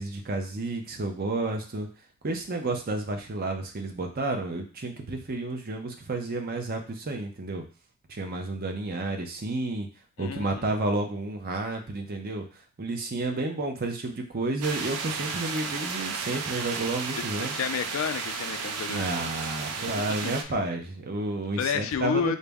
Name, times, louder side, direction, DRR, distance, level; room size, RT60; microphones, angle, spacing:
voice 1, 0.0-1.9 2.2-7.6 8.1-9.9 10.2-17.5 18.9-22.4, right 2 dB, 40° right, 4 dB, 0.6 m, -31 dB
voice 2, 10.2-10.7 17.2-19.3 19.9-20.3 21.6-22.4, left 7 dB, 60° left, 10 dB, 0.3 m, -31 dB
sound 1, 14.6-20.4, right 5 dB, 90° right, 0.4 m, -33 dB
4.0 x 2.0 x 3.5 m, 0.35 s
head